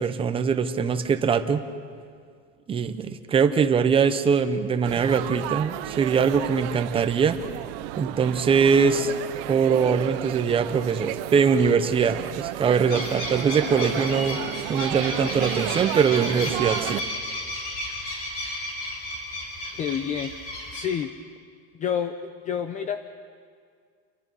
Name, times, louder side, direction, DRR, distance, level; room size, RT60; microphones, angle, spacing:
voice 1, 0.0-1.6 2.7-7.4 8.0-9.1 9.5-14.4 14.7-17.0, right 6 dB, 15° right, 9 dB, 0.9 m, -22 dB
Laughter / Chatter / Crowd, 4.8-17.0, right 17 dB, 55° right, 0.7 m, -33 dB
sound 1, 12.9-20.9, left 1 dB, 45° left, 7.1 m, -33 dB
voice 2, 19.8-20.3 20.7-21.1 21.7-22.1 22.4-23.0, left 8 dB, 25° left, 10 dB, 0.6 m, -28 dB
29.0 x 23.5 x 5.6 m, 2.2 s
cardioid pair, 170°, 31 cm